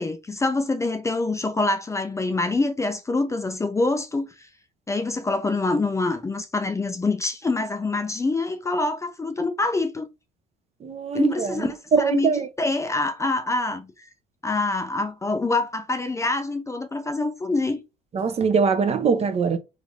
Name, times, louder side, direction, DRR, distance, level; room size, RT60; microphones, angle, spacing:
voice 1, 0.0-4.5 4.9-10.1 11.1-12.3 12.6-14.1 14.4-17.8, left 2 dB, 15° left, 0.4 m, -25 dB
voice 2, 10.8-12.5 18.1-19.6, right 5 dB, 40° right, 0.6 m, -22 dB
3.2 x 2.5 x 3.5 m
cardioid pair, 110°, 17 cm